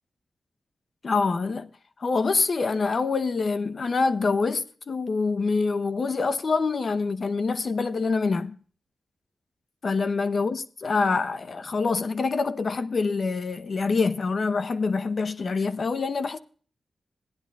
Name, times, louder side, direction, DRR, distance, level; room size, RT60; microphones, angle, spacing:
voice 1, 1.0-1.7 2.0-8.6 9.8-16.4, left 4 dB, 55° left, 0.8 m, -25 dB
17.0 x 10.5 x 2.3 m
wide cardioid pair, 95°, 0 cm